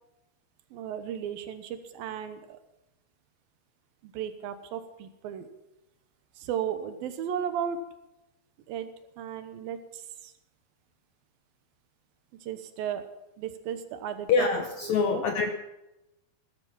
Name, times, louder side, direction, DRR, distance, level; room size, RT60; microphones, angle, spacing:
voice 1, 0.7-2.6 4.0-5.5 6.4-7.8 8.7-8.9 9.2-10.3 12.4-13.1 13.4-14.5 14.8-15.3, right 9 dB, 75° right, 10 dB, 2.8 m, -35 dB
voice 2, 14.3-15.5, left 5 dB, 75° left, 6 dB, 1.7 m, -25 dB
17.5 x 12.5 x 5.7 m, 0.95 s
omnidirectional pair, 4.3 m